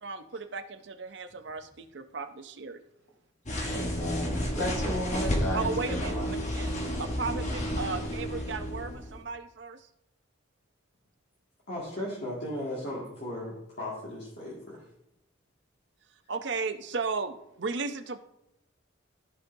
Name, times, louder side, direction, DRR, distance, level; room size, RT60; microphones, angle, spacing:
voice 1, 0.0-2.8 5.5-6.1 6.5-6.7 7.0-9.9 16.3-18.2, right 4 dB, 60° right, 8 dB, 0.6 m, -35 dB
sound 1, 3.5-9.2, equal, 35° left, 1.2 m, -31 dB
voice 2, 3.6-6.3, equal, 85° left, -2 dB, 3.5 m, -34 dB
voice 3, 11.7-14.8, left 1 dB, 55° left, -7 dB, 2.0 m, -36 dB
14.0 x 5.3 x 2.7 m, 0.82 s
head